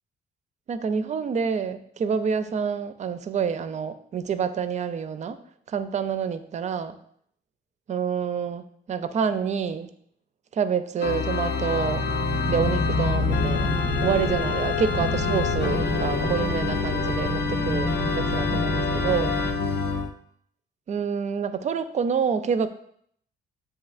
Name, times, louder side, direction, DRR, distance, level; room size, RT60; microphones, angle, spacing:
voice 1, 0.7-5.4 5.7-7.0 7.9-9.9 10.5-12.1 12.5-13.7 14.0-19.4 20.9-22.7, right 6 dB, 35° right, 11 dB, 0.4 m, -27 dB
Organ, 11.0-20.1, left 4 dB, 65° left, 0.5 m, -26 dB
sound 1, 11.8-19.8, equal, 5° left, 0.7 m, -30 dB
6.9 x 2.7 x 2.4 m, 0.66 s
cardioid pair, 90°, 20 cm